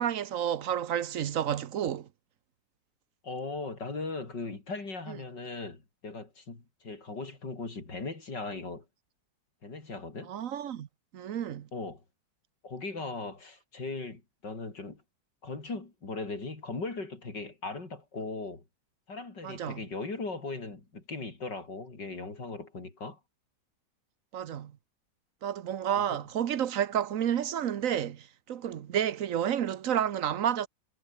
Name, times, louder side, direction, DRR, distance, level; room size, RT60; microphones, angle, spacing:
voice 1, 0.0-2.1 5.1-5.2 10.3-10.9 11.1-11.7 19.4-19.8 24.3-24.7 25.4-30.7, right 9 dB, 55° right, 1.2 m, -30 dB
voice 2, 3.2-8.9 9.6-10.3 11.7-12.0 12.6-15.0 15.4-18.6 19.1-23.2 25.9-26.2, left 3 dB, 85° left, 5.3 m, -38 dB
omnidirectional pair, 1.8 m